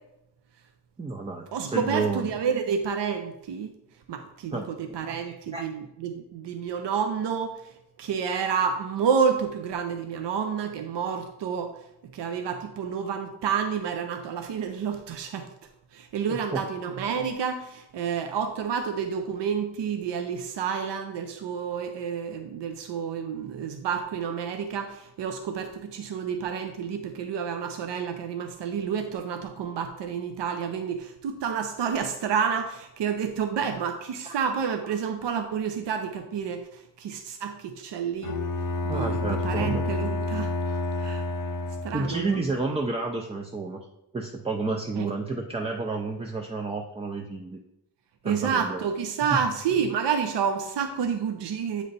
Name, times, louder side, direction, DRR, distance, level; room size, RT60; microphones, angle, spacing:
voice 1, 1.0-2.3 4.5-4.7 5.2-5.7 16.3-16.6 34.3-34.4 38.9-39.8 41.9-43.9 44.1-47.6 48.2-48.8, right 3 dB, 15° right, 2 dB, 0.3 m, -30 dB
voice 2, 1.5-3.7 4.1-7.7 8.0-11.8 12.1-15.5 15.9-38.3 38.8-41.2 41.8-42.4 45.0-45.1 48.2-51.8, right 7 dB, 80° right, 6 dB, 0.6 m, -29 dB
Bowed string instrument, 38.2-42.2, left 2 dB, 50° left, 0.7 m, -29 dB
7.7 x 3.2 x 4.0 m, 0.86 s
wide cardioid pair, 120°, 42 cm